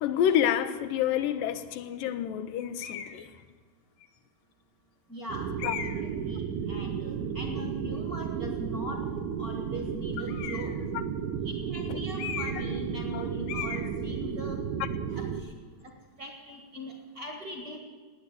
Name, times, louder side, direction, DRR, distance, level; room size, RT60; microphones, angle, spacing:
voice 1, 0.0-3.3 5.6-5.8 13.1-13.2, left 10 dB, 85° left, 10 dB, 2.5 m, -28 dB
sound 1, 2.8-3.2 4.0-4.1 5.6-6.1 10.3-10.8 12.2-12.8 13.0-13.2 13.5-13.9, left 8 dB, 65° left, 1.7 m, -37 dB
voice 2, 5.1-5.5 5.9-9.0 9.4-10.7 11.4-14.6 15.1-15.5 16.2-17.8, equal, 35° right, 1 dB, 1.6 m, -40 dB
sound 2, 5.3-15.4, right 7 dB, 75° right, 2.3 m, -33 dB
17.5 x 9.4 x 8.4 m, 1.4 s
omnidirectional pair, 3.9 m